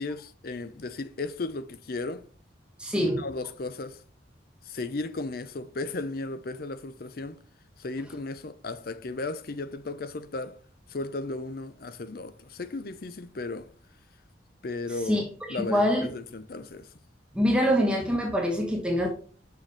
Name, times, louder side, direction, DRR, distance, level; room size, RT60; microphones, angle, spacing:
voice 1, 0.0-2.3 3.0-4.0 4.6-7.4 7.8-10.6 10.9-13.7 14.6-15.2 15.5-16.9, left 3 dB, 50° left, 0.5 m, -35 dB
voice 2, 2.8-3.2 15.1-15.2 15.5-16.1 17.3-19.1, equal, 5° right, 1.1 m, -24 dB
6.3 x 5.7 x 3.3 m
head